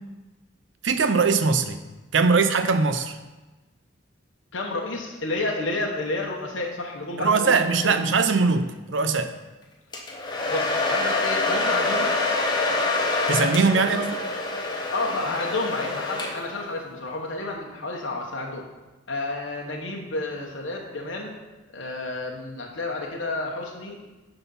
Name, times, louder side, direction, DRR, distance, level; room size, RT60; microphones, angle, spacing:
voice 1, 0.8-1.8 2.1-3.2 7.2-9.3 13.3-14.2, right 4 dB, 65° right, 9 dB, 0.6 m, -21 dB
voice 2, 4.5-7.5 7.8-8.0 10.5-12.2 13.8-14.0 14.9-18.6 19.1-21.3 21.7-24.0, left 2 dB, 70° left, -1 dB, 1.0 m, -30 dB
Domestic sounds home sounds, 9.9-16.6, left 2 dB, 20° left, 1.0 m, -26 dB
9.7 x 4.0 x 5.5 m, 1.1 s
head